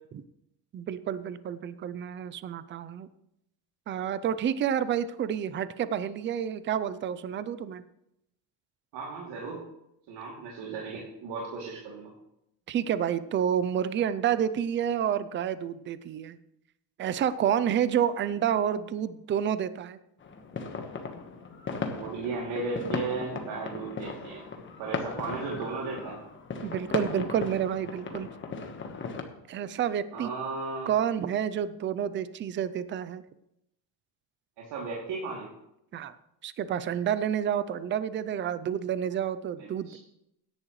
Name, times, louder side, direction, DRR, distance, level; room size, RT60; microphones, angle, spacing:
voice 1, 0.7-3.1 3.9-7.8 12.7-16.4 17.0-20.0 26.6-28.3 29.5-30.3 30.9-33.2 35.9-36.1 36.4-40.0, right 9 dB, 25° right, 15 dB, 0.5 m, -29 dB
voice 2, 8.9-9.6 10.1-12.1 21.9-24.4 24.8-26.2 30.1-30.9 34.6-35.5 39.6-40.0, right 4 dB, 70° right, -3 dB, 2.8 m, -35 dB
sound 1, 20.2-29.2, left 4 dB, 25° left, 1.3 m, -37 dB
16.5 x 10.5 x 3.2 m, 0.82 s
cardioid pair, 150°, 44 cm